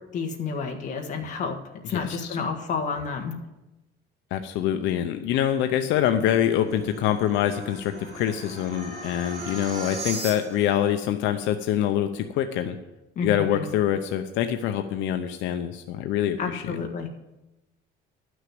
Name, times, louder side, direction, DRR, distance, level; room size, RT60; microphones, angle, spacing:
voice 1, 0.1-1.6 1.9-3.3 13.1-13.6 16.4-17.1, left 5 dB, 40° left, 3 dB, 1.5 m, -30 dB
voice 2, 1.8-2.4 4.3-12.7 13.2-16.8, left 10 dB, 80° left, 7 dB, 0.7 m, -25 dB
Metal Spawn, 5.8-10.8, right 2 dB, 55° right, 3.7 m, -38 dB
11.5 x 6.3 x 7.8 m, 0.98 s
cardioid pair, 175°, 19 cm